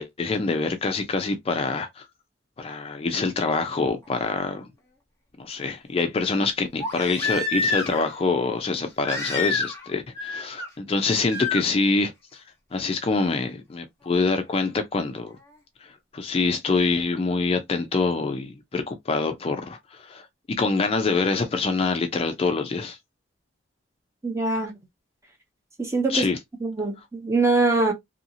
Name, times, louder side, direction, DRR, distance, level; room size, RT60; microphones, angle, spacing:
voice 1, 0.0-2.1 2.6-4.6 5.4-12.4 12.7-15.4 15.8-23.0 26.1-26.4, left 3 dB, 30° left, 0.3 m, -25 dB
Crying sobbing, 4.1-4.2 6.8-8.1 9.0-9.9 10.2-10.7 11.3-11.6 13.2-13.3, left 3 dB, 15° left, 0.9 m, -28 dB
voice 2, 24.2-24.7 25.8-26.3 26.6-27.9, right 3 dB, 15° right, 0.7 m, -23 dB
2.7 x 2.7 x 2.6 m
head